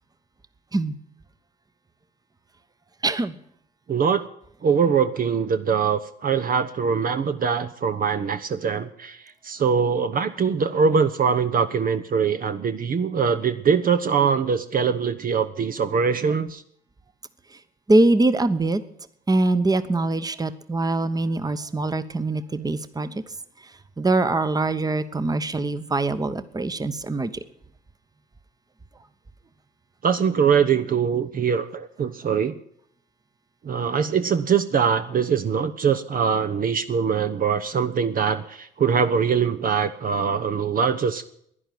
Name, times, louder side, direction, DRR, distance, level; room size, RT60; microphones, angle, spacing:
voice 1, 3.0-3.4 17.9-18.8 19.3-23.2 24.0-27.3, right 2 dB, 20° right, 12 dB, 1.1 m, -23 dB
voice 2, 3.9-4.2 4.6-16.6 30.0-32.6 33.6-41.2, right 6 dB, 45° right, 9 dB, 0.9 m, -22 dB
11.0 x 10.5 x 9.4 m, 0.69 s
hypercardioid pair, 60°, 21 cm